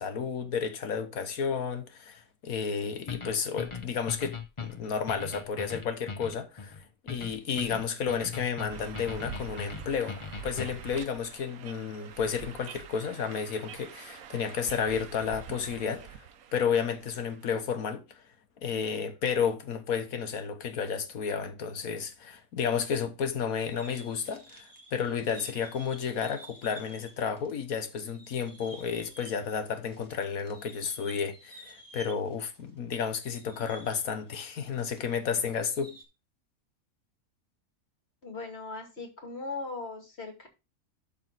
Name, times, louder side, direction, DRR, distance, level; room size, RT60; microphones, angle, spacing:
voice 1, 0.0-6.7 7.1-16.2 16.5-18.2 18.6-36.0, left 6 dB, 75° left, 1.6 m, -32 dB
sound 1, 3.1-11.0, left 5 dB, 25° left, 0.7 m, -39 dB
sound 2, 8.7-17.5, right 8 dB, 75° right, 1.3 m, -46 dB
sound 3, 23.4-27.5 27.8-35.2 35.4-36.0, right 2 dB, 15° right, 1.5 m, -52 dB
voice 2, 38.2-40.5, left 3 dB, 45° left, 2.7 m, -39 dB
12.0 x 4.2 x 4.0 m
omnidirectional pair, 1.5 m